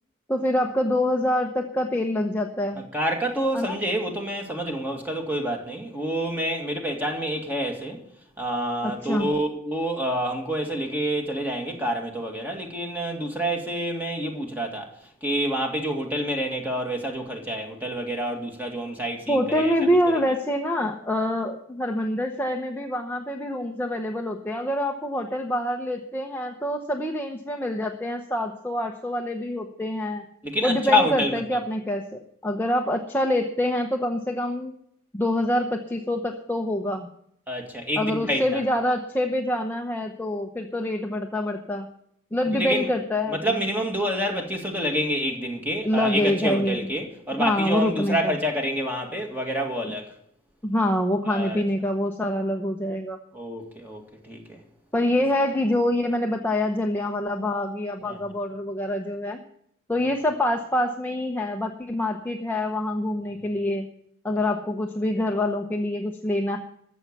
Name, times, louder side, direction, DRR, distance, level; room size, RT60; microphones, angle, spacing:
voice 1, 0.3-2.8 3.5-3.8 8.8-9.3 19.3-30.3 30.6-34.7 35.1-37.1 38.0-41.9 42.3-43.4 45.8-46.9 47.4-48.3 49.8-49.9 50.6-53.2 54.9-59.4 59.9-63.9 64.2-66.6, left 1 dB, 10° left, 0.8 m, -26 dB
voice 2, 2.8-8.0 8.4-14.9 15.2-19.7 30.4-31.6 37.5-38.6 42.5-42.9 43.3-50.1 51.3-51.6 53.3-54.6 58.0-58.4, equal, 10° right, 2.0 m, -28 dB
14.0 x 7.3 x 8.1 m
head